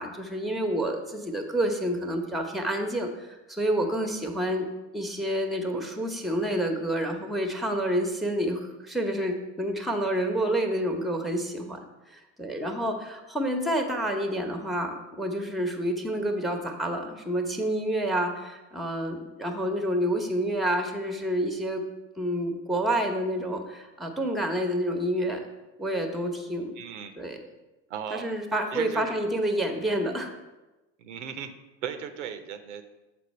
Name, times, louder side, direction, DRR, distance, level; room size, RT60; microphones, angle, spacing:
voice 1, 0.0-21.8 22.2-25.4 25.8-26.7 27.2-27.4 28.1-30.3, right 1 dB, ahead, 4 dB, 0.9 m, -29 dB
voice 2, 26.8-27.1 27.9-28.3 28.7-29.2 31.0-31.5 31.8-32.8, right 8 dB, 85° right, 8 dB, 0.7 m, -36 dB
6.8 x 4.4 x 4.3 m, 1.1 s
hypercardioid pair, 90°, 35 cm